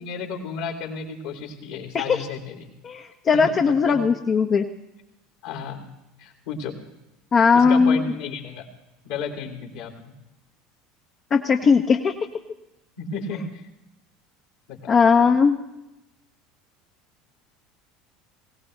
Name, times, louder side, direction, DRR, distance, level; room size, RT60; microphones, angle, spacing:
voice 1, 0.0-2.7 3.3-4.0 5.4-5.8 6.2-6.8 7.5-8.7 9.0-10.1 13.0-13.6 14.7-15.0, left 5 dB, 70° left, 1 dB, 3.6 m, -33 dB
voice 2, 2.8-4.7 7.3-8.1 11.3-12.1 14.9-15.6, left 5 dB, 35° left, 4 dB, 1.0 m, -18 dB
21.5 x 17.5 x 3.3 m, 0.93 s
hypercardioid pair, 75°, 0 cm